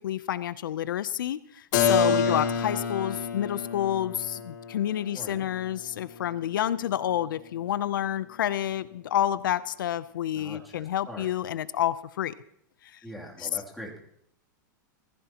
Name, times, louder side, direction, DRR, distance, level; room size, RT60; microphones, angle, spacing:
voice 1, 0.0-12.3 12.8-13.0 13.4-13.5, left 11 dB, 85° left, 16 dB, 0.6 m, -29 dB
Keyboard (musical), 1.7-7.3, left 6 dB, 65° left, 2.2 m, -29 dB
voice 2, 2.1-2.5 5.1-5.5 10.3-11.3 13.0-14.0, left 1 dB, ahead, -2 dB, 2.8 m, -42 dB
19.5 x 15.0 x 2.9 m, 0.71 s
supercardioid pair, 145°, 11 cm